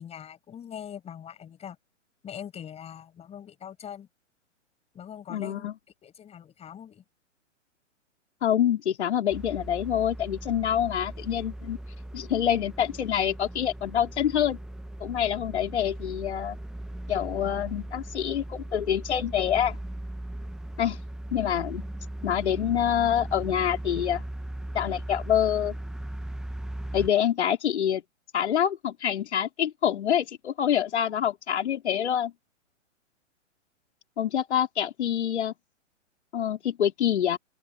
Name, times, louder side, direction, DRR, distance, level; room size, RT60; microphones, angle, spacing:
voice 1, 0.0-1.8 2.2-4.1 4.9-5.7 6.0-7.0, left 9 dB, 15° left, 6.7 m, -42 dB
voice 2, 5.3-5.7 8.4-11.8 12.1-14.6 15.0-16.6 17.1-19.8 20.8-21.0 21.3-21.9 22.2-24.2 24.7-25.8 26.9-28.0 28.3-32.3 34.2-35.5 36.3-37.4, left 10 dB, 60° left, 4.4 m, -26 dB
sound 1, 9.3-27.1, right 1 dB, ahead, 1.9 m, -38 dB
figure-of-eight pair, 125°, 38 cm